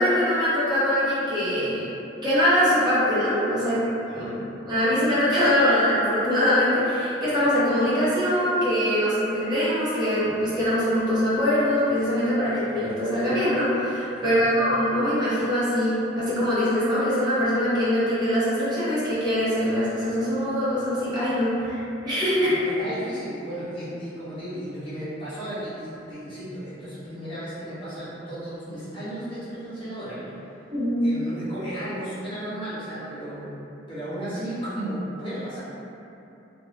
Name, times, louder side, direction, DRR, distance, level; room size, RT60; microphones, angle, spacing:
voice 1, 0.0-1.8 2.2-3.8 4.1-4.4 4.6-22.5 30.7-31.0, equal, 25° right, -12 dB, 0.9 m, -23 dB
voice 2, 14.1-14.6 22.4-30.3 31.0-33.5 33.9-35.6, right 1 dB, 30° left, -12 dB, 1.0 m, -34 dB
2.5 x 2.2 x 3.1 m, 2.9 s
head